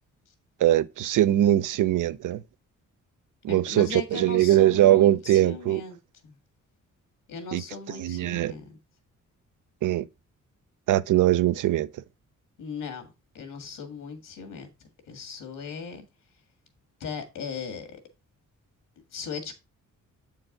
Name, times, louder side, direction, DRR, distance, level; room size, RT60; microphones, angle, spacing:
voice 1, 0.6-2.4 3.4-5.8 7.5-7.6 8.0-8.6 9.8-10.1 10.9-11.9, right 13 dB, 75° right, 0.5 m, -21 dB
voice 2, 3.5-6.0 6.2-6.4 7.3-8.7 12.6-13.1 13.3-14.7 15.1-16.1 17.0-18.0 19.1-19.5, left 5 dB, 80° left, 1.8 m, -37 dB
7.9 x 4.6 x 3.8 m
wide cardioid pair, 135°, 31 cm